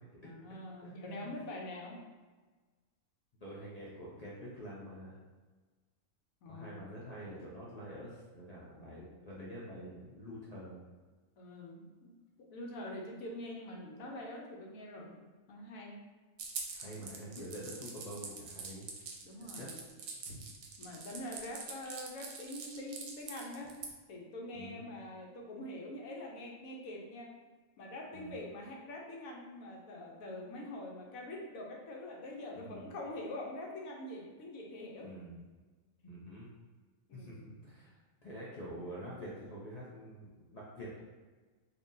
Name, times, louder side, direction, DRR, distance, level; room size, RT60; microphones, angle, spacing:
voice 1, 0.2-2.0 6.4-6.9 11.4-12.1 12.5-15.2 15.5-16.0 17.0-17.1 19.2-19.8 20.3-20.4 20.8-23.7 24.1-27.3 27.8-35.1 37.1-37.4, left 1 dB, 80° left, -1 dB, 1.1 m, -44 dB
voice 2, 0.8-1.4 3.4-5.1 6.5-10.8 16.7-18.8 19.4-19.7 24.5-24.8 28.1-28.3 32.6-32.8 35.0-35.4 36.0-36.5 37.1-41.0, equal, 55° left, -6 dB, 0.4 m, -47 dB
sound 1, 16.4-23.9, right 5 dB, 75° right, 0.9 m, -44 dB
3.6 x 2.8 x 2.6 m, 1.3 s
omnidirectional pair, 1.4 m